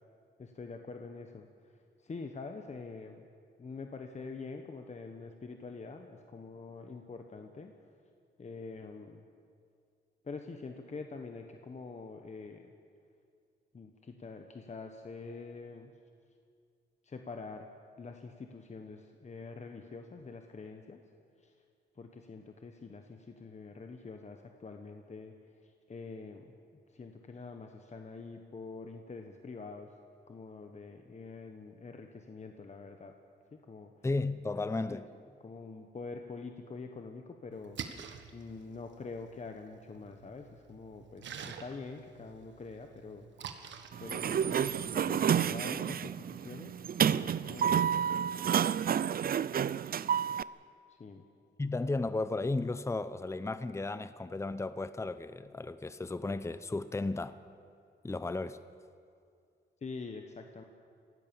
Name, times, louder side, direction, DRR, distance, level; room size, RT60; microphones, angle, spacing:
voice 1, 0.4-3.3 3.6-7.7 8.4-9.2 10.2-12.7 13.7-15.9 17.0-17.7 18.0-21.0 21.4-21.6 21.9-26.6 26.9-29.9 30.3-33.1 33.5-33.9 34.9-35.0 35.4-37.8 38.3-43.6 44.0-48.1 50.9-51.2 59.8-60.6, left 4 dB, 40° left, 1.4 m, -45 dB
voice 2, 34.0-35.0 51.6-57.4 58.0-58.6, left 3 dB, 15° left, 0.7 m, -34 dB
Splash splatter, 37.5-44.9, right 7 dB, 90° right, 1.5 m, -48 dB
Sliding door, 43.9-50.4, right 8 dB, 55° right, 0.5 m, -30 dB
25.5 x 17.0 x 7.1 m
cardioid pair, 95°, 18 cm